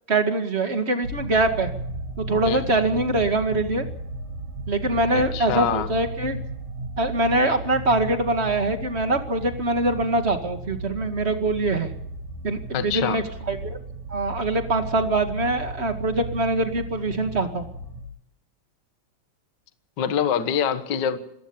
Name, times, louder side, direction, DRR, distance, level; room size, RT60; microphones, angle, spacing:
voice 1, 0.1-1.7 2.2-3.8 4.7-6.4 7.0-11.9 12.4-13.8 14.1-17.7, right 2 dB, 25° right, 6 dB, 1.7 m, -23 dB
sound 1, 1.0-18.0, right 1 dB, 80° right, 6.3 m, -35 dB
voice 2, 5.1-5.9 12.7-13.2 20.0-21.2, left 8 dB, 45° left, 10 dB, 1.5 m, -25 dB
26.0 x 15.0 x 7.3 m, 0.79 s
omnidirectional pair, 3.7 m